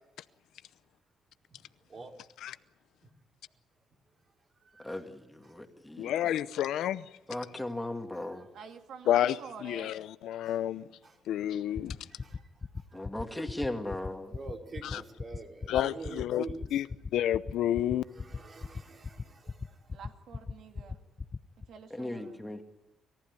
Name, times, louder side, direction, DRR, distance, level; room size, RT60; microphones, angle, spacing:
voice 1, 1.5-2.1 3.0-3.1 4.6-5.0 5.4-5.6 8.3-8.6 9.3-9.4 9.8-10.0 10.4-10.6 11.0-13.2 14.3-16.8 17.9-20.0 20.8-20.9, right 4 dB, 40° right, 4.0 m, -48 dB
voice 2, 4.8-6.4 7.3-8.5 12.9-14.3 14.9-15.0 21.9-22.6, left 1 dB, 10° left, 2.4 m, -37 dB
voice 3, 6.0-7.1 9.1-10.8 11.3-12.0 15.7-16.4 16.7-16.8 17.1-18.0, left 11 dB, 80° left, 0.7 m, -29 dB
voice 4, 8.5-10.0 19.9-21.0 21.7-22.4, right 6 dB, 70° right, 2.4 m, -47 dB
sound 1, 11.8-21.7, left 4 dB, 30° left, 0.8 m, -37 dB
28.0 x 15.0 x 9.6 m
cardioid pair, 90°, 0 cm